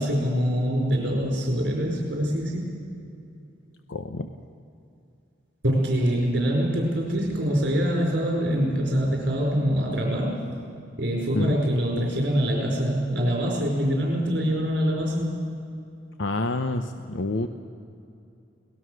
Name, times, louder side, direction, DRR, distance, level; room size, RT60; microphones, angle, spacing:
voice 1, 0.0-2.7 5.6-10.4 11.0-15.3, equal, 60° right, -2 dB, 5.2 m, -24 dB
voice 2, 3.9-4.3 11.3-11.6 16.2-17.5, left 2 dB, 75° left, 7 dB, 0.8 m, -27 dB
23.5 x 19.0 x 6.5 m, 2.5 s
head